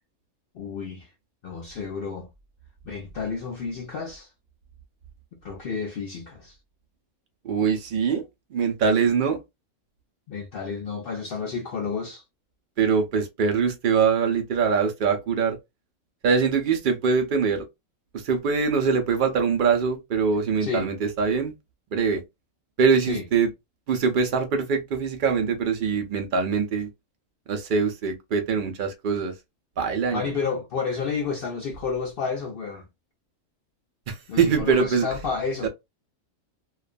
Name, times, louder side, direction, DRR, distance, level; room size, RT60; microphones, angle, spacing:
voice 1, 0.5-1.1 1.4-2.3 2.8-4.3 5.4-6.6 10.3-12.2 20.6-20.9 23.0-23.2 30.1-32.9 34.3-35.7, left 5 dB, 75° left, 0.5 m, -31 dB
voice 2, 7.4-8.2 8.5-9.4 12.8-15.6 16.2-17.6 18.1-21.5 21.9-22.2 22.8-23.5 23.9-26.9 27.5-29.3 29.8-30.3 34.1-35.1 35.6-35.7, right 5 dB, 70° right, 0.4 m, -23 dB
2.4 x 2.2 x 2.4 m
omnidirectional pair, 1.5 m